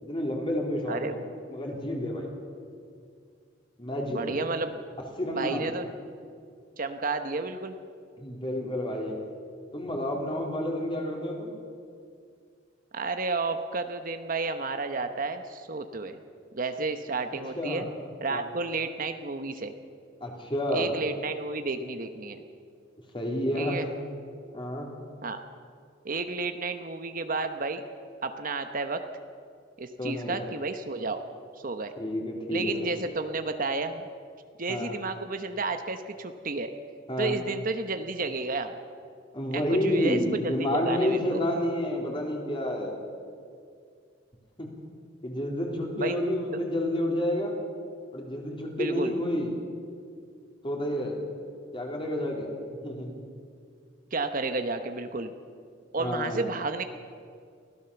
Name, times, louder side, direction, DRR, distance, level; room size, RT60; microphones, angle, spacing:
voice 1, 0.0-1.2 1.5-2.3 3.8-4.4 5.2-5.6 8.2-9.2 9.7-11.5 17.5-17.8 18.3-18.5 20.2-20.9 23.1-23.8 24.5-24.9 30.0-30.4 32.0-32.7 34.7-34.9 37.1-37.4 39.3-43.0 44.6-44.7 45.2-47.6 48.1-49.6 50.6-51.2 51.7-53.1 56.0-56.5, left 1 dB, 25° left, 0 dB, 3.8 m, -30 dB
voice 2, 4.1-4.8 5.4-5.9 6.8-7.7 12.9-16.2 16.5-17.9 18.2-19.7 20.7-22.4 23.5-23.9 25.2-25.4 26.0-27.8 28.2-29.0 29.8-31.2 31.6-31.9 32.5-34.1 34.6-36.7 37.2-38.7 39.5-41.4 46.0-46.2 46.5-46.6 48.8-49.1 54.1-55.3 55.9-56.8, right 3 dB, 45° right, 8 dB, 1.0 m, -31 dB
24.0 x 16.5 x 7.1 m, 2.3 s
head